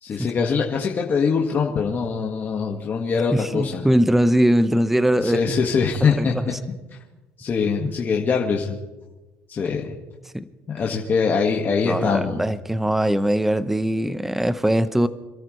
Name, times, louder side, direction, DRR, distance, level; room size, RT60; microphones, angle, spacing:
voice 1, 0.0-3.9 5.2-6.3 7.4-8.8 9.5-9.9 10.7-12.4, left 5 dB, 40° left, -1 dB, 1.8 m, -23 dB
voice 2, 3.3-5.4 6.2-6.3 10.3-10.4 11.8-15.1, right 1 dB, 5° right, 13 dB, 0.8 m, -21 dB
27.0 x 13.5 x 3.3 m, 1.1 s
cardioid pair, 110°, 5 cm